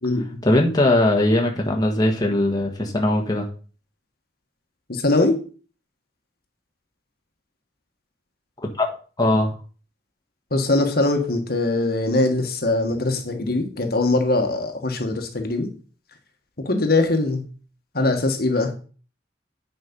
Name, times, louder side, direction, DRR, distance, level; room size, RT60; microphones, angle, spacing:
voice 1, 0.4-3.5 8.6-8.9 9.2-9.5, left 1 dB, 20° left, 0 dB, 1.4 m, -20 dB
voice 2, 4.9-5.4 10.5-15.7 16.6-17.5 17.9-18.7, left 2 dB, 55° left, 4 dB, 1.6 m, -21 dB
9.6 x 5.2 x 5.4 m, 0.38 s
head